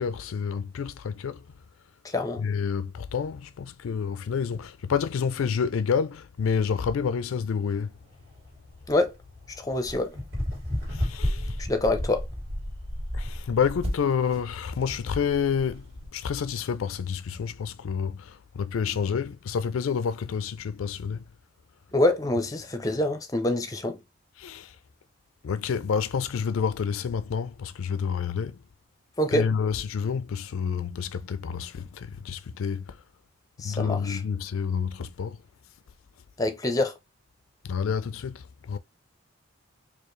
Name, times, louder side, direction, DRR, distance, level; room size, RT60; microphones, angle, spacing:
voice 1, 0.0-1.5 2.4-7.9 10.9-11.7 13.1-15.9 16.1-21.2 24.4-24.8 25.4-28.6 29.3-33.0 33.6-35.4 37.6-38.8, left 6 dB, 85° left, 0.4 m, -29 dB
voice 2, 2.0-2.4 8.9-9.1 9.6-10.2 11.7-12.2 21.9-24.0 29.2-29.5 33.6-34.2 36.4-36.9, left 1 dB, 15° left, 0.5 m, -25 dB
sound 1, 7.7-16.1, equal, 55° right, 2.2 m, -33 dB
4.6 x 2.4 x 3.1 m
head